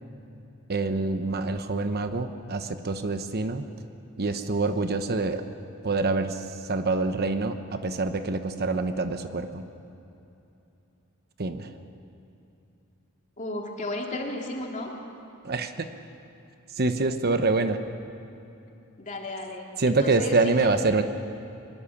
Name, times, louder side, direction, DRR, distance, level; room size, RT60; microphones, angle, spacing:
voice 1, 0.7-3.7 4.2-5.4 5.8-9.6 11.4-11.8 15.4-15.9 16.7-17.8 19.8-21.0, right 3 dB, 45° right, 8 dB, 1.0 m, -26 dB
voice 2, 13.4-14.9 19.0-20.3 20.6-20.7, left 1 dB, 35° left, 0 dB, 2.9 m, -34 dB
23.0 x 21.5 x 7.2 m, 2.8 s
head